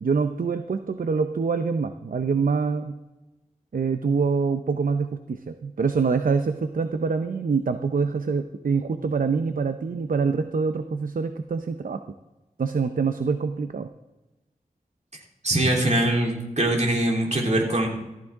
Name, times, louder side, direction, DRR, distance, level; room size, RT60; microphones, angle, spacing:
voice 1, 0.0-3.0 3.7-12.0 12.6-13.9, right 5 dB, 70° right, 9 dB, 0.6 m, -25 dB
voice 2, 15.4-17.9, right 1 dB, 50° right, -1 dB, 3.3 m, -22 dB
14.5 x 14.0 x 3.6 m, 1.0 s
wide cardioid pair, 80°, 15 cm